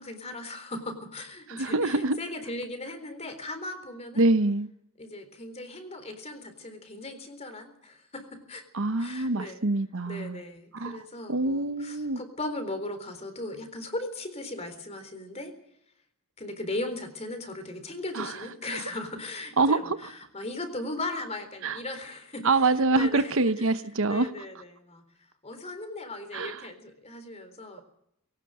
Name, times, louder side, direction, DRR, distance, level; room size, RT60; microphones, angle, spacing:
voice 1, 0.0-4.2 5.0-8.6 9.0-9.6 10.1-15.5 16.4-23.3 23.6-23.8 24.0-25.0 25.4-27.8, left 2 dB, 30° left, 3.9 m, -38 dB
voice 2, 1.6-2.2 4.2-4.7 8.7-10.4 10.7-11.0 11.3-12.2 18.1-18.4 19.6-20.0 21.6-21.8 22.4-24.3 26.3-26.6, right 3 dB, 60° right, 1.0 m, -25 dB
21.0 x 18.5 x 7.8 m
head